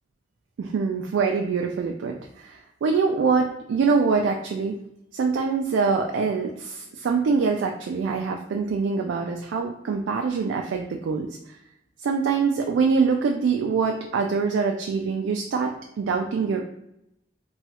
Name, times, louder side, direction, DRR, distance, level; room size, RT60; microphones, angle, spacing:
voice 1, 0.6-4.8 5.1-11.3 12.0-16.6, right 5 dB, 80° right, 2 dB, 0.3 m, -24 dB
3.0 x 2.3 x 2.9 m, 0.82 s
head